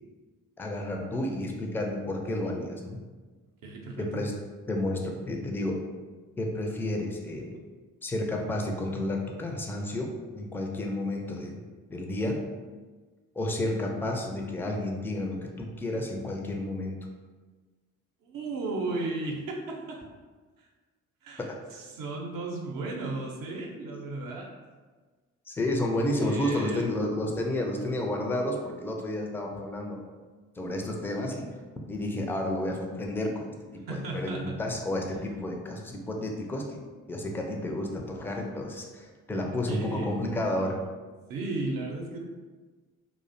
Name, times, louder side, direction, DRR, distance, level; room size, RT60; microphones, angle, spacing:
voice 1, 0.6-3.0 4.0-4.3 4.7-5.8 6.4-7.6 8.0-11.6 11.9-12.4 13.4-17.0 21.4-21.6 25.5-30.0 30.6-31.5 31.9-36.8 37.1-40.8, left 1 dB, 5° left, 1 dB, 0.3 m, -31 dB
voice 2, 3.6-4.3 18.2-20.0 21.2-24.5 26.2-27.0 33.9-34.6 39.7-40.2 41.3-42.2, right 2 dB, 65° right, 0 dB, 0.5 m, -35 dB
2.4 x 2.1 x 2.5 m, 1.4 s
hypercardioid pair, 45°, 37 cm